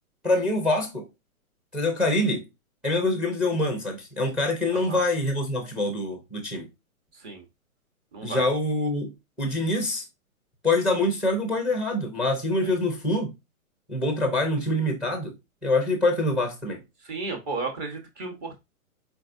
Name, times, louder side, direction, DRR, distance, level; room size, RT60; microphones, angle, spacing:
voice 1, 0.2-1.1 1.7-2.4 2.8-6.7 8.2-9.1 9.4-10.0 10.6-13.3 13.9-15.3 15.6-16.8, left 2 dB, ahead, 0.7 m, -25 dB
voice 2, 8.1-8.5 12.6-12.7 17.1-18.6, right 3 dB, 20° right, 1.0 m, -33 dB
4.4 x 4.4 x 2.6 m
hypercardioid pair, 145°, 44 cm